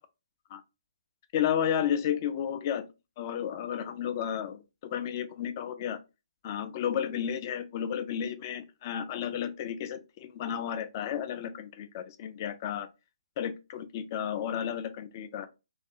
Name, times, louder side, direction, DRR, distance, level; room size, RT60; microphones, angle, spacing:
voice 1, 1.3-2.8 3.2-6.0 6.4-12.9 13.4-15.5, left 9 dB, 35° left, 0.4 m, -32 dB
2.4 x 2.3 x 2.6 m
figure-of-eight pair, 135°, 3 cm